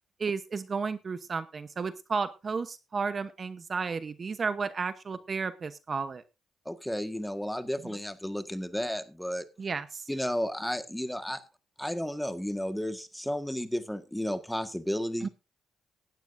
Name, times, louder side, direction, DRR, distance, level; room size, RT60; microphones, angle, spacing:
voice 1, 0.2-6.2 7.8-7.9 9.6-10.0 15.2-15.3, right 5 dB, 40° right, 11 dB, 0.9 m, -33 dB
voice 2, 6.6-9.4 10.1-11.4 11.8-15.3, equal, 5° left, 9 dB, 1.6 m, -33 dB
17.0 x 12.0 x 2.6 m, 0.28 s
cardioid pair, 90°, 0 cm